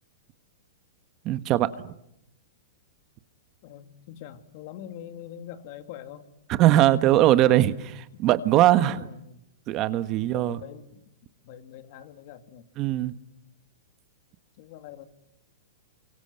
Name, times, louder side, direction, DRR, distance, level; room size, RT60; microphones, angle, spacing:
voice 1, 1.2-1.9 6.5-9.1 9.7-10.6 12.8-13.1, right 13 dB, 35° right, 13 dB, 1.4 m, -21 dB
voice 2, 3.6-6.3 7.3-7.8 8.1-8.2 9.0-9.5 10.2-11.1 11.4-12.7 14.6-15.0, left 10 dB, 50° left, 9 dB, 2.8 m, -44 dB
28.5 x 24.5 x 7.8 m, 0.78 s
hypercardioid pair, 135°, 0 cm